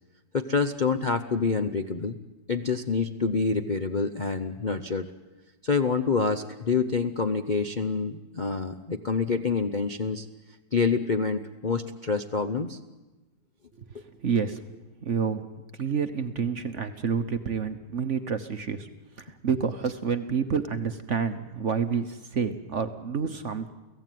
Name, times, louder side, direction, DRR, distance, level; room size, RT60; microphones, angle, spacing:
voice 1, 0.3-2.2 2.5-5.1 5.6-10.3 10.7-12.8, left 4 dB, 40° left, 7 dB, 0.6 m, -27 dB
voice 2, 14.2-15.4 15.8-18.9 19.2-23.7, right 6 dB, 45° right, 9 dB, 1.2 m, -29 dB
29.5 x 17.0 x 9.3 m, 1.1 s
omnidirectional pair, 2.1 m